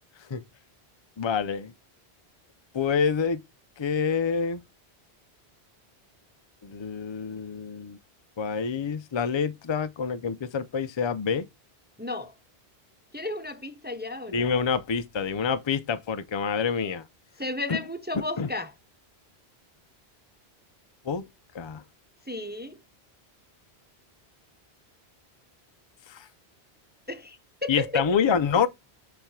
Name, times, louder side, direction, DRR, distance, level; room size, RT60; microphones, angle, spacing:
voice 1, 1.2-1.7 2.7-3.4 3.8-4.6 6.6-8.0 8.4-11.5 14.3-17.0 17.7-17.8 18.1-18.5 21.0-21.3 21.5-21.8 26.1-26.3 27.7-28.7, left 6 dB, 35° left, 0.5 m, -27 dB
voice 2, 12.0-12.3 13.1-14.4 17.4-18.7 22.3-22.8 27.1-28.1, left 2 dB, 10° right, 0.6 m, -33 dB
6.9 x 3.4 x 5.8 m
omnidirectional pair, 1.1 m